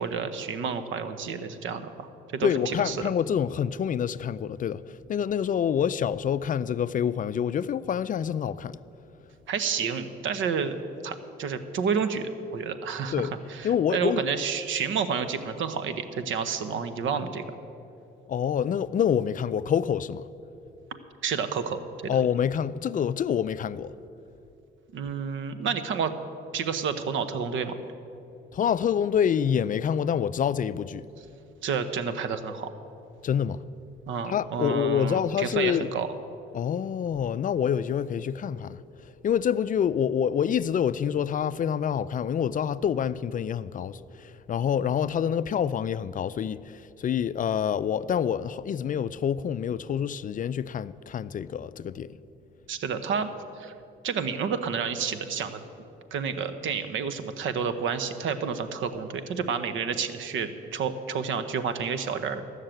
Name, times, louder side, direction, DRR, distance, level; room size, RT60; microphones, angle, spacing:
voice 1, 0.0-3.0 9.5-17.4 21.2-22.1 24.9-26.1 26.5-27.8 31.6-32.7 34.1-36.1 52.7-53.3 53.6-53.7 54.0-55.6 56.1-62.4, right 6 dB, 75° right, 0.9 m, -30 dB
voice 2, 2.4-8.8 13.1-13.3 13.6-14.2 18.3-20.2 22.1-23.9 28.5-31.1 33.2-33.6 34.3-35.9 36.5-38.8 39.2-52.1, left 8 dB, 40° left, 0.4 m, -27 dB
14.5 x 6.5 x 8.9 m
cardioid pair, 90°, 20 cm